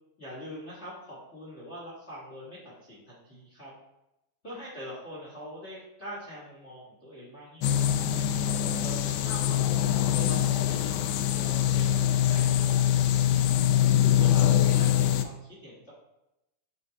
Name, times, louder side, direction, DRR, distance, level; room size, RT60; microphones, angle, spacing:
voice 1, 0.2-3.7 4.4-8.2 8.8-13.5 14.0-15.8, equal, 55° left, -6 dB, 0.7 m, -44 dB
sound 1, 7.6-15.2, left 10 dB, 85° left, 2.3 m, -24 dB
9.8 x 4.0 x 4.0 m, 0.89 s
omnidirectional pair, 4.2 m